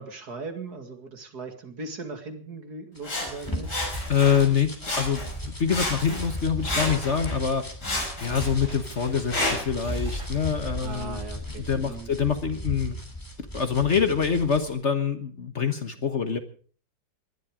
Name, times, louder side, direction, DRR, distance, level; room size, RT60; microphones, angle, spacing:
voice 1, 0.0-3.8 10.8-12.1, right 3 dB, 60° right, 6 dB, 2.7 m, -39 dB
Sawing, 3.0-4.5 4.8-5.4 5.7-7.4 7.8-9.8 10.5-10.6, left 1 dB, 70° left, 6.8 m, -31 dB
sound 1, 3.0-14.7, equal, 10° left, 3.0 m, -37 dB
voice 2, 4.1-7.7 8.2-11.2 11.6-13.0 13.4-16.4, left 7 dB, 45° left, 9 dB, 1.5 m, -25 dB
sound 2, 5.9-6.2 8.3-9.0 9.8-12.4, equal, 15° right, 4.5 m, -39 dB
20.5 x 12.0 x 5.1 m, 0.44 s
omnidirectional pair, 1.9 m